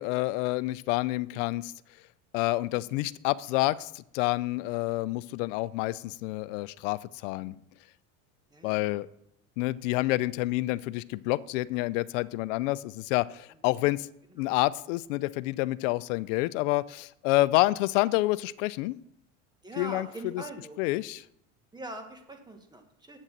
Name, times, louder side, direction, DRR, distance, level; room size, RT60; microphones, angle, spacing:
voice 1, 0.0-1.7 2.3-7.5 8.6-9.1 9.6-14.1 14.4-18.9 19.8-20.1 20.8-21.2, left 19 dB, 85° left, 18 dB, 0.6 m, -28 dB
voice 2, 8.5-9.0 11.7-11.8 13.5-13.8 14.4-14.5 19.6-20.8 21.7-23.2, right 2 dB, 10° right, 5 dB, 1.6 m, -43 dB
8.7 x 6.6 x 7.3 m, 0.76 s
supercardioid pair, 130°, 36 cm